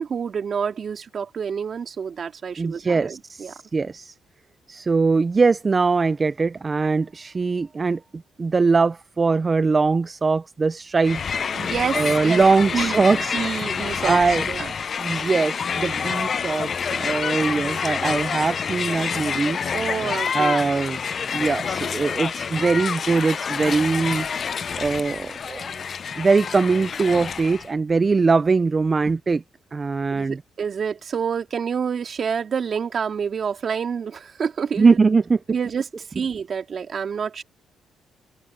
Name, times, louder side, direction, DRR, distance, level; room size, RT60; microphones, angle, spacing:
voice 1, 0.0-3.5 11.5-12.4 12.7-14.2 14.5-14.7 19.7-20.6 30.1-35.0 35.5-35.8 36.1-37.4, right 6 dB, 50° right, 2.6 m, -28 dB
voice 2, 2.6-4.1 4.7-11.2 11.9-13.4 14.0-14.4 15.0-19.6 20.3-21.0 21.3-24.3 24.8-25.8 26.2-29.4 29.7-30.4 34.8-35.4, right 4 dB, 30° right, 0.6 m, -21 dB
Crowd, 11.0-27.7, left 6 dB, 45° left, 0.5 m, -27 dB
cardioid pair, 90°, 0 cm